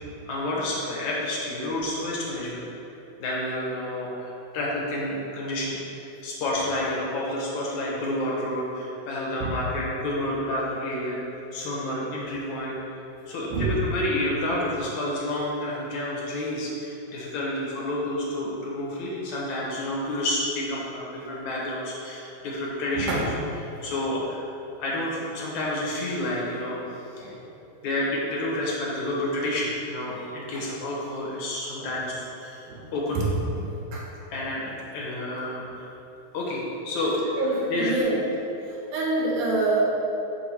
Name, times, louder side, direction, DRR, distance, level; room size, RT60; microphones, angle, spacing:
voice 1, 0.3-2.6 3.2-11.2 11.5-12.7 13.3-23.1 23.8-24.4 24.8-26.8 27.2-27.3 27.8-32.6 32.9-33.2 34.3-35.9 36.3-37.2 37.7-37.9, left 1 dB, 70° left, -5 dB, 2.6 m, -29 dB
voice 2, 22.9-23.3 27.2-27.3 30.5-30.6 31.8-31.9 32.7-32.8 33.1-33.2 33.5-34.1 37.4-38.2 38.7-39.8, right 2 dB, 75° right, -4 dB, 2.9 m, -26 dB
6.9 x 6.3 x 4.5 m, 2.9 s
omnidirectional pair, 3.6 m